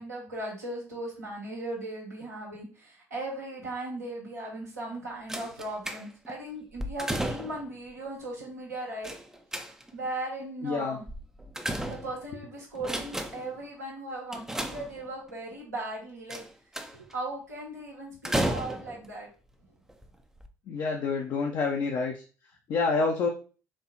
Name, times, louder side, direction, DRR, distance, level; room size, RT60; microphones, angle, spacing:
voice 1, 0.0-9.1 9.9-11.0 11.9-16.4 16.9-19.3, right 2 dB, 85° right, -5 dB, 1.4 m, -37 dB
sound 1, 5.3-6.3 6.8-7.7 9.0-10.1 11.1-12.4 12.8-13.6 14.3-15.3 16.3-17.1 18.2-19.1 19.9-20.0 20.4-20.5, right 1 dB, 5° right, 0.5 m, -33 dB
voice 2, 10.6-11.0 20.7-22.2 22.7-23.3, left 4 dB, 45° left, 0 dB, 0.6 m, -27 dB
4.3 x 2.8 x 2.9 m, 0.37 s
figure-of-eight pair, 50°, 9 cm